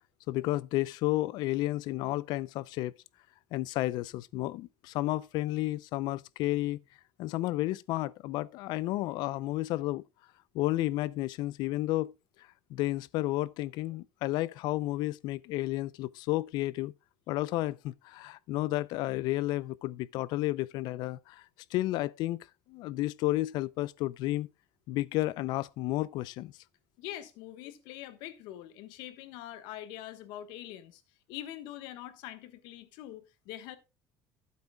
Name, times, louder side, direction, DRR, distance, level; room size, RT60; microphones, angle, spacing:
voice 1, 0.3-3.0 3.5-6.8 7.2-10.0 10.5-12.1 12.7-16.9 17.3-21.4 21.7-24.5 24.9-26.5, left 17 dB, 65° left, 0.5 m, -32 dB
voice 2, 27.0-31.0 31.3-33.8, left 12 dB, 85° left, 1.2 m, -44 dB
14.5 x 8.3 x 2.3 m
cardioid pair, 155°, 8 cm